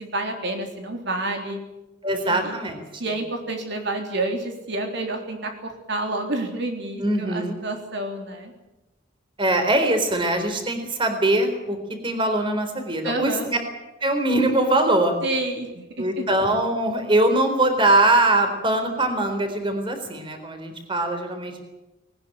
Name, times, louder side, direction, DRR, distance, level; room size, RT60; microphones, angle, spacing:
voice 1, 0.0-1.6 2.2-2.5 3.0-8.5 13.0-13.5 15.2-16.2, right 2 dB, 60° right, 3 dB, 3.6 m, -29 dB
voice 2, 2.0-2.8 7.0-7.6 9.4-11.8 12.0-13.6 14.0-15.1 16.0-21.6, right 1 dB, 25° right, 7 dB, 3.9 m, -22 dB
20.5 x 19.0 x 8.8 m, 0.99 s
head